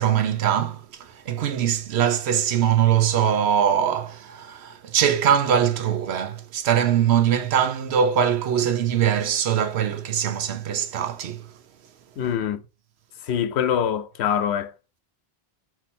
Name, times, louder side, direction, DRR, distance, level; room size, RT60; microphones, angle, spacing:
voice 1, 0.0-11.5, right 9 dB, 85° right, 0.9 m, -22 dB
voice 2, 12.2-12.6 13.2-14.7, left 9 dB, 85° left, 0.9 m, -24 dB
4.3 x 2.8 x 4.3 m
omnidirectional pair, 1.1 m